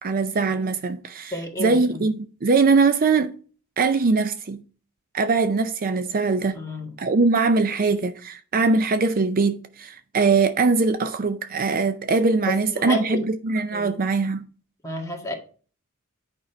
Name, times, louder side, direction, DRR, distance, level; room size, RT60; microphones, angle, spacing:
voice 1, 0.0-3.3 3.8-4.6 5.1-6.6 7.0-14.4, right 4 dB, 40° right, 0.5 m, -22 dB
voice 2, 1.3-2.0 6.5-6.9 12.5-13.2 13.7-13.9 14.8-15.3, left 1 dB, 15° left, 1.7 m, -30 dB
8.8 x 5.3 x 4.3 m
head